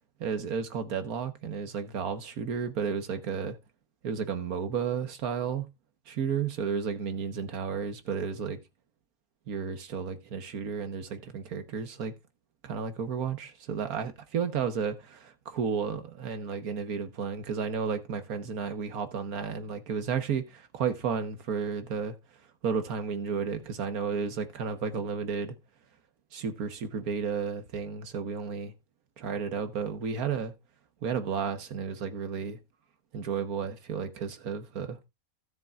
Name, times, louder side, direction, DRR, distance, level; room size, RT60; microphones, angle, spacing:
voice 1, 0.2-3.6 4.0-5.7 6.1-8.6 9.5-12.1 12.6-22.2 22.6-25.5 26.3-28.7 29.2-30.5 31.0-32.6 33.1-35.0, right 6 dB, 85° right, 1.6 m, -32 dB
16.0 x 6.9 x 2.4 m
omnidirectional pair, 1.5 m